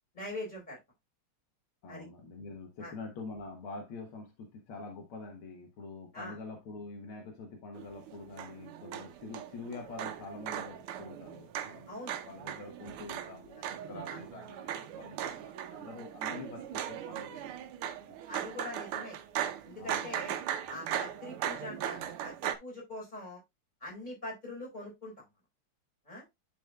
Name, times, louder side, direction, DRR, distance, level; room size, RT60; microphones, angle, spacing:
voice 1, 0.1-0.8 1.9-2.1 2.8-2.9 6.1-6.4 11.9-12.2 13.6-13.7 14.1-14.2 18.3-19.2 19.6-20.4 20.7-23.4 23.8-25.2 26.1-26.2, left 1 dB, 20° left, 4.4 m, -43 dB
voice 2, 1.8-18.4 19.8-20.4, left 3 dB, 75° left, 2.1 m, -46 dB
sound 1, 7.7-22.5, right 10 dB, 80° right, 1.6 m, -39 dB
9.9 x 5.1 x 2.3 m
omnidirectional pair, 2.4 m